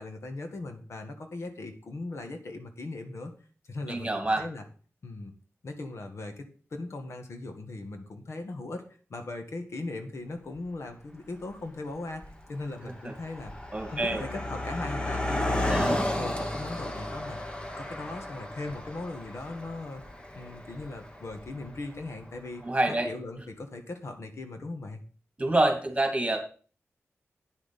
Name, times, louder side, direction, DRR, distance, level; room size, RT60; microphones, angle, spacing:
voice 1, 0.0-3.3 3.7-4.6 5.0-5.3 5.6-8.8 9.1-12.2 12.5-13.5 13.9-17.4 17.8-20.0 20.3-25.0, left 2 dB, 65° left, 5 dB, 1.6 m, -39 dB
voice 2, 3.9-4.4 13.7-14.2 15.7-16.0 22.6-23.1 25.4-26.4, right 2 dB, 25° right, 4 dB, 2.4 m, -26 dB
Car passing by, 10.5-10.6 11.4-11.7 12.0-22.4, left 1 dB, 20° left, 1.4 m, -33 dB
9.7 x 6.3 x 5.3 m, 0.40 s
wide cardioid pair, 105°, 5 cm